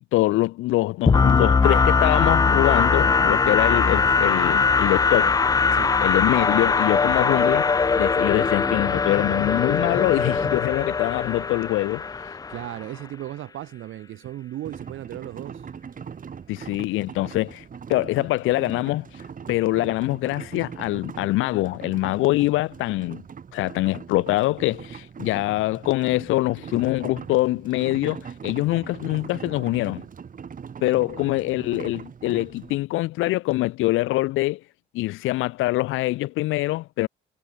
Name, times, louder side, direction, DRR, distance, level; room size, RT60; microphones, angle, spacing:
voice 1, 0.1-5.3 6.0-7.7 8.0-12.0 16.5-17.6 17.9-19.1 19.5-23.2 23.5-30.0 30.8-34.6 34.9-37.1, left 18 dB, 90° left, 0.6 m, -24 dB
sound 1, 1.1-12.8, left 5 dB, 20° left, 0.3 m, -21 dB
voice 2, 12.5-15.6 30.9-31.2, right 13 dB, 80° right, 6.6 m, -36 dB
sound 2, 14.6-32.8, right 7 dB, 45° right, 2.0 m, -40 dB
cardioid pair, 90°, 20 cm